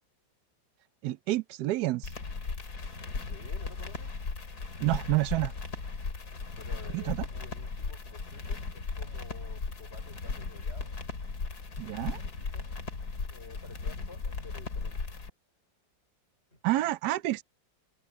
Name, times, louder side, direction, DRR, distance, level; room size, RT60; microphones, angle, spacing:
voice 1, 1.0-2.1 4.8-5.5 6.9-7.3 11.8-12.2 16.6-17.4, right 17 dB, 70° right, 1.0 m, -29 dB
sound 1, 2.0-15.3, left 4 dB, 55° left, 3.0 m, -37 dB
voice 2, 3.3-4.1 6.5-10.9 12.2-12.6 13.3-15.0 16.5-16.6, left 4 dB, 35° left, 5.3 m, -51 dB
omnidirectional pair, 2.0 m